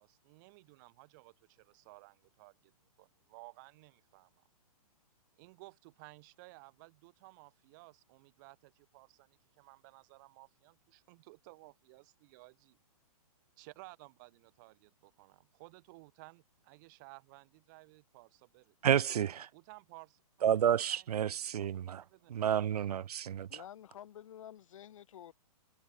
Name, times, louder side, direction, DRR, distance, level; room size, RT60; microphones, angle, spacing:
voice 1, 0.0-2.7 3.0-4.4 5.4-12.8 13.6-18.8 19.5-20.5 20.7-21.7 22.0-22.3, right 25 dB, 30° right, 1.8 m, -57 dB
voice 2, 18.8-19.5 20.4-22.0 22.3-23.5, right 9 dB, 85° right, 0.6 m, -30 dB
voice 3, 23.5-25.3, left 10 dB, 55° left, 6.2 m, -50 dB
hypercardioid pair, 160°, 19 cm